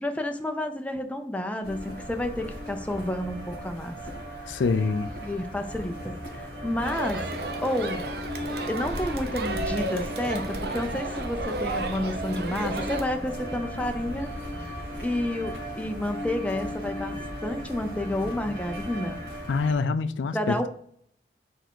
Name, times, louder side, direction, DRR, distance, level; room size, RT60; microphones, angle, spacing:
voice 1, 0.0-4.0 5.2-7.3 7.6-8.0 8.7-14.3 15.0-19.2 20.3-20.7, left 1 dB, 5° left, 0.5 m, -30 dB
sound 1, 1.6-19.7, equal, 70° right, 2.3 m, -36 dB
voice 2, 4.5-5.1 19.5-20.7, left 4 dB, 85° left, 0.4 m, -25 dB
Crowd, 6.8-13.0, right 2 dB, 55° right, 0.7 m, -33 dB
4.6 x 4.4 x 4.5 m
head